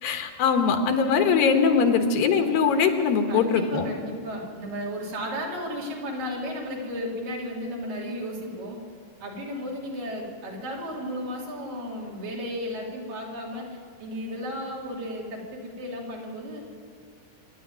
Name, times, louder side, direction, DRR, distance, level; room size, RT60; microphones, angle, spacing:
voice 1, 0.0-3.9, left 6 dB, 80° left, 5 dB, 3.1 m, -22 dB
voice 2, 3.3-8.8 9.2-16.6, equal, 65° right, -3 dB, 4.9 m, -34 dB
26.0 x 11.0 x 9.5 m, 2.2 s
omnidirectional pair, 4.2 m